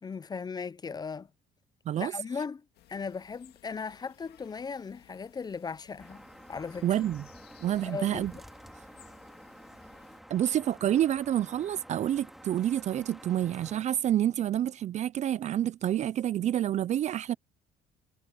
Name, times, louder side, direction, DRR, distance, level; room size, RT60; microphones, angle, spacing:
voice 1, 0.0-1.3 2.0-6.2 6.5-6.9 7.8-8.4, left 5 dB, 25° left, 0.5 m, -37 dB
sound 1, 2.7-10.2, left 13 dB, 75° left, 1.9 m, -60 dB
sound 2, 6.0-13.8, equal, ahead, 2.8 m, -50 dB
voice 2, 6.8-7.2 7.6-8.3 10.3-17.3, right 11 dB, 45° right, 0.4 m, -28 dB
cardioid pair, 110°, 17 cm